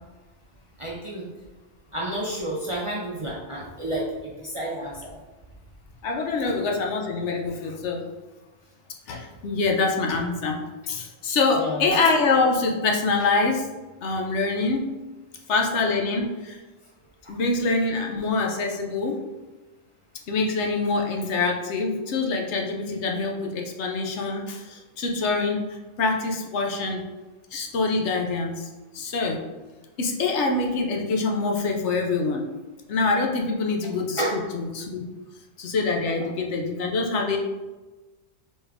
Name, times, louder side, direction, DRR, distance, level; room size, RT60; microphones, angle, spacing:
voice 1, 0.8-1.2 1.9-5.2 11.5-11.9 34.2-34.3, right 1 dB, 35° right, -5 dB, 0.5 m, -30 dB
voice 2, 6.0-8.1 9.1-10.6 10.9-13.7 14.0-14.9 15.5-16.6 17.3-19.2 20.3-27.0 27.5-28.7 28.9-29.4 30.0-32.5 32.9-35.1 35.6-37.4, left 3 dB, 70° left, 1 dB, 0.9 m, -25 dB
4.2 x 3.6 x 3.4 m, 1.2 s
omnidirectional pair, 1.3 m